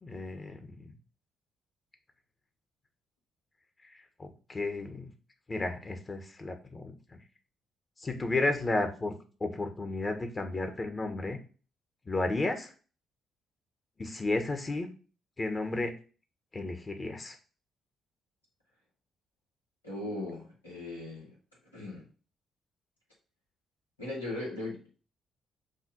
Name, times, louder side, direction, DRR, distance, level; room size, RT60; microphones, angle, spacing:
voice 1, 0.0-1.0 3.8-5.1 5.5-7.2 8.0-9.1 9.4-11.4 12.0-12.7 14.0-14.9 15.4-15.9 16.5-17.3, left 2 dB, 30° left, 6 dB, 1.3 m, -33 dB
voice 2, 19.8-21.4 21.7-22.1 24.0-24.9, left 2 dB, 85° left, -6 dB, 1.9 m, -38 dB
6.4 x 2.7 x 5.3 m, 0.37 s
figure-of-eight pair, 40°, 0 cm